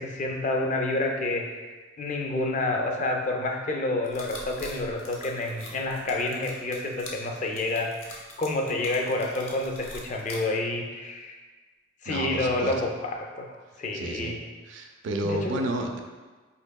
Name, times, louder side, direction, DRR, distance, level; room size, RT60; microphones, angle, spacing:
voice 1, 0.0-11.4 12.0-13.5 13.8-14.4 15.2-15.6, left 2 dB, 35° left, 2 dB, 0.3 m, -29 dB
sound 1, 4.0-10.4, left 2 dB, 90° left, 0.7 m, -43 dB
voice 2, 12.0-12.9 13.9-14.3 14.7-16.0, right 1 dB, 65° right, 4 dB, 0.4 m, -31 dB
4.4 x 2.8 x 2.2 m, 1.3 s
head